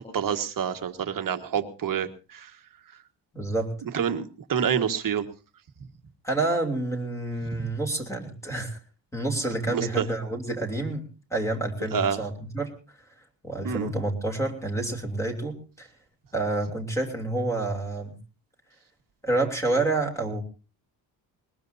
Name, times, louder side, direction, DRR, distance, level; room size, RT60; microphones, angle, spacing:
voice 1, 0.1-2.5 3.8-5.2 7.6-7.7 9.7-10.1 11.9-12.2 13.6-13.9, right 7 dB, 45° right, 7 dB, 1.5 m, -28 dB
voice 2, 3.3-3.7 6.2-8.8 9.1-12.7 13.4-15.9 16.3-18.1 19.2-20.4, right 2 dB, 5° left, 2 dB, 3.0 m, -28 dB
20.5 x 20.5 x 2.7 m, 0.32 s
cardioid pair, 150°, 44 cm